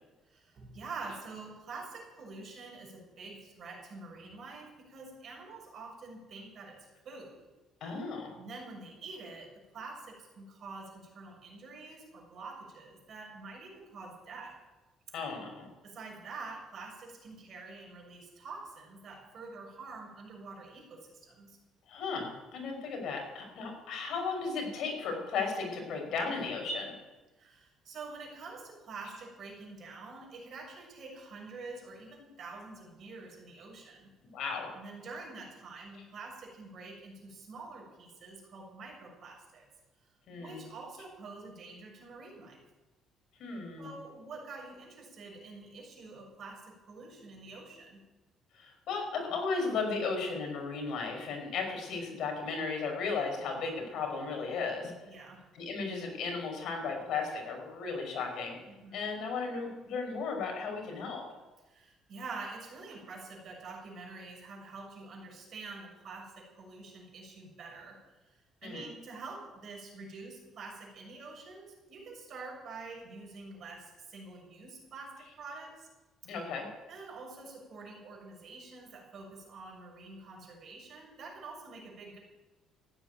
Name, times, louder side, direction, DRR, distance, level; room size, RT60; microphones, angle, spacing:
voice 1, 0.2-7.5 8.4-14.6 15.8-21.6 27.4-34.1 34.7-39.6 40.0-40.1 40.4-42.6 43.8-48.0 55.1-55.4 58.7-59.1 61.7-75.9 76.9-82.2, right 3 dB, 45° right, -1 dB, 6.6 m, -47 dB
voice 2, 7.8-8.3 15.1-15.7 21.9-26.9 34.3-34.7 40.3-40.6 43.4-43.9 48.5-54.9 55.5-58.6 58.9-61.2 68.6-68.9 76.2-76.7, left 4 dB, 65° left, 2 dB, 5.4 m, -35 dB
15.5 x 9.7 x 9.2 m, 1.1 s
cardioid pair, 140°, 0 cm